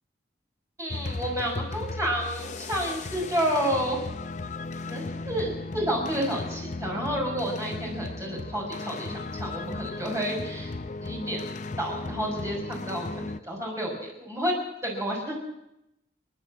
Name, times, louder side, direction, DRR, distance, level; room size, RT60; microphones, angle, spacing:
voice 1, 0.8-4.0 4.9-10.7 11.0-11.4 11.8-14.5 14.8-15.3, equal, 15° right, -2 dB, 5.9 m, -30 dB
sound 1, 0.9-13.4, left 3 dB, 45° left, 0.7 m, -36 dB
29.5 x 11.5 x 7.7 m, 0.84 s
head